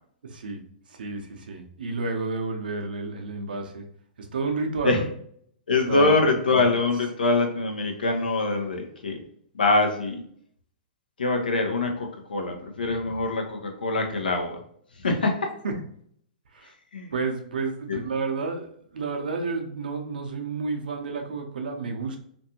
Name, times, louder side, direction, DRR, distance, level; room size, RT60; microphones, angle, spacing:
voice 1, 0.2-0.6 0.9-3.8 4.2-5.1 5.9-6.2 15.6-15.8 16.5-16.7 17.1-22.2, right 4 dB, 75° right, 3 dB, 0.6 m, -31 dB
voice 2, 5.7-9.2 9.5-10.2 11.2-14.6 15.0-15.5 16.9-17.1 17.9-18.0, left 3 dB, 85° left, 3 dB, 0.6 m, -24 dB
2.6 x 2.3 x 2.7 m, 0.64 s
hypercardioid pair, 120°, 5 cm